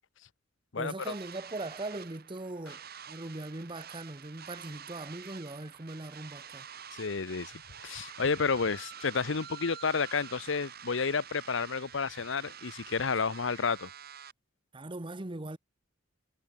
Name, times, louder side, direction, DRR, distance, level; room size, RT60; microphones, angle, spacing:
voice 1, 0.8-6.7 14.7-15.6, right 2 dB, 25° right, 1.0 m, -40 dB
sound 1, 1.0-14.3, right 8 dB, 55° right, 4.4 m, -48 dB
voice 2, 7.0-7.5 7.8-13.9, left 5 dB, 80° left, 0.8 m, -31 dB
head